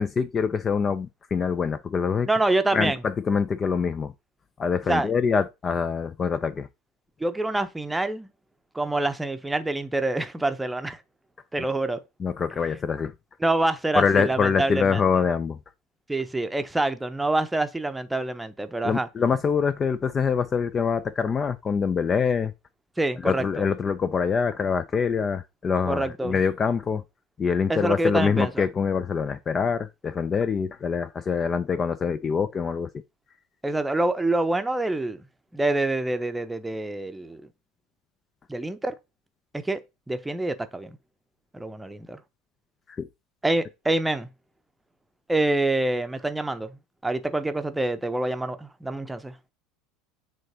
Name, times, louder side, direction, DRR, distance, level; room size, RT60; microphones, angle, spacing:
voice 1, 0.0-2.3 2.7-4.1 4.6-6.7 12.2-13.1 13.9-15.6 18.8-22.5 23.2-27.0 27.4-32.9 43.0-43.1, left 6 dB, 30° left, 0.5 m, -25 dB
voice 2, 2.3-3.0 4.9-5.1 7.2-8.3 8.7-11.0 11.5-12.0 13.4-15.0 16.1-19.1 23.0-23.6 25.9-26.4 27.7-28.7 33.6-35.2 35.5-37.4 38.5-38.9 39.5-39.8 40.1-41.0 41.5-42.2 43.4-44.3 45.3-46.8 47.0-49.3, right 2 dB, 10° right, 0.8 m, -26 dB
9.1 x 4.0 x 2.8 m
figure-of-eight pair, 75°, 0 cm